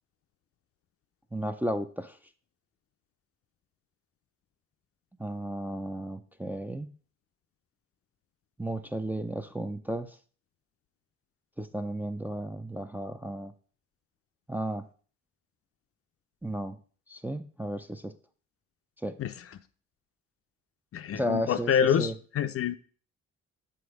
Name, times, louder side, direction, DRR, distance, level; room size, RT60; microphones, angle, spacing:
voice 1, 1.3-2.2 5.2-6.9 8.6-10.2 11.6-13.5 14.5-14.9 16.4-16.8 17.1-18.1 19.0-19.2 21.1-22.2, right 1 dB, 5° right, 7 dB, 0.4 m, -34 dB
voice 2, 20.9-22.8, left 8 dB, 50° left, 11 dB, 0.5 m, -26 dB
7.0 x 3.6 x 4.8 m, 0.42 s
cardioid pair, 90°, 30 cm